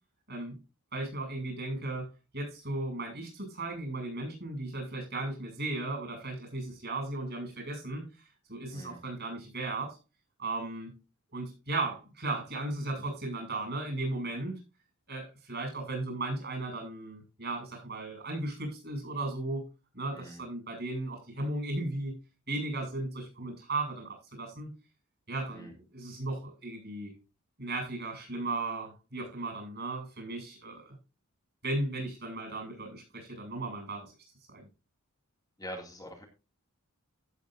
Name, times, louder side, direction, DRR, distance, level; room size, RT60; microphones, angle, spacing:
voice 1, 0.9-2.1 2.3-8.1 8.5-10.0 10.4-10.9 11.3-14.5 15.1-19.6 19.9-22.1 22.5-24.7 25.3-27.1 27.6-30.9 31.6-34.1 34.5-34.7, right 2 dB, 50° right, 3 dB, 7.8 m, -36 dB
voice 2, 35.6-36.2, equal, 20° left, 0 dB, 2.5 m, -44 dB
16.0 x 8.7 x 2.7 m, 0.29 s
head